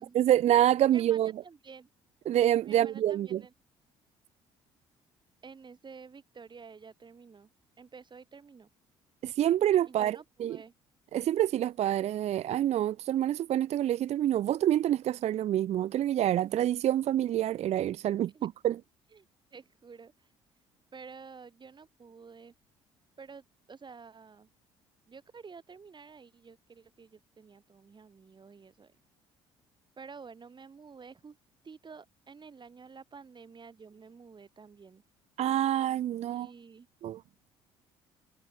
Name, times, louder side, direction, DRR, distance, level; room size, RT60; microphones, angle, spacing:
voice 1, 0.1-1.3 2.3-3.4 9.2-10.6 11.1-18.8 35.4-36.5 37.0-37.2, right 12 dB, 55° right, 0.6 m, -27 dB
voice 2, 0.9-1.9 2.6-3.5 5.4-7.5 7.8-8.7 9.8-10.7 18.3-18.5 19.1-19.3 19.5-20.3 20.9-22.5 23.2-24.5 25.1-28.9 30.0-31.4 31.6-35.0 36.2-36.9, right 5 dB, 35° right, 4.9 m, -50 dB
hypercardioid pair, 60°, 13 cm